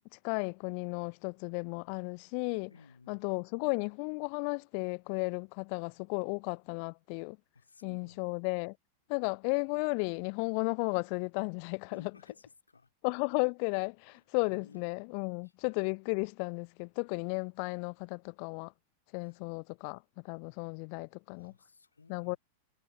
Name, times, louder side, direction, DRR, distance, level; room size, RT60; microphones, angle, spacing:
voice 1, 0.1-2.7 3.1-7.4 7.8-8.8 9.1-12.1 13.0-18.7 19.1-21.5 22.1-22.4, left 40 dB or more, 45° left, 0.3 m, -34 dB
voice 2, 2.7-3.3 6.3-6.4 7.5-8.4 11.9-12.9 14.1-14.8 15.4-15.5 19.2-19.4 21.3-22.4, left 4 dB, 75° left, 5.5 m, -58 dB
figure-of-eight pair, 90°, 0 cm